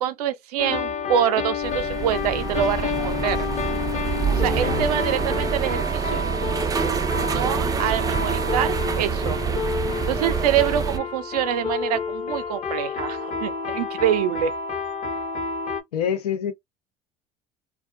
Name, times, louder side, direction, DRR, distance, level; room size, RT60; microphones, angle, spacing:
voice 1, 0.0-3.5 4.4-6.2 7.3-9.4 10.1-14.5, right 10 dB, 80° right, 0.5 m, -25 dB
sound 1, 0.6-15.8, left 5 dB, 35° left, 0.8 m, -29 dB
sound 2, 1.6-11.0, right 7 dB, 20° right, 0.4 m, -26 dB
voice 2, 15.9-16.5, left 8 dB, 85° left, 0.5 m, -26 dB
2.3 x 2.1 x 2.5 m
hypercardioid pair, 70°, 20 cm